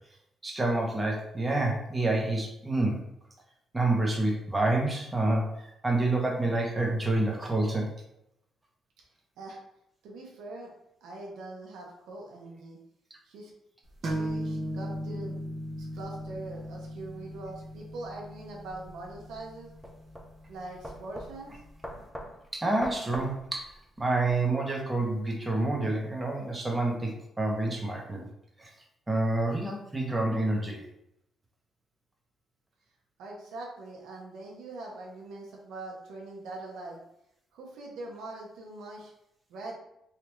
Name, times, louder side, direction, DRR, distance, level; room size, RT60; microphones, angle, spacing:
voice 1, 0.4-3.0 3.7-7.9 22.5-28.3 28.6-28.7 29.1-30.8, right 2 dB, 15° right, -1 dB, 0.8 m, -28 dB
voice 2, 10.0-10.7 11.0-12.8 13.2-13.5 14.0-15.4 15.8-19.7 20.5-21.5 33.2-37.0 37.5-39.1 39.5-39.7, right 2 dB, 85° right, -2 dB, 0.8 m, -42 dB
sound 1, 14.0-21.5, equal, 45° right, 0.8 m, -38 dB
sound 2, 18.7-24.3, equal, 5° left, 0.5 m, -43 dB
3.3 x 2.5 x 3.0 m, 0.80 s
cardioid pair, 90°, 0 cm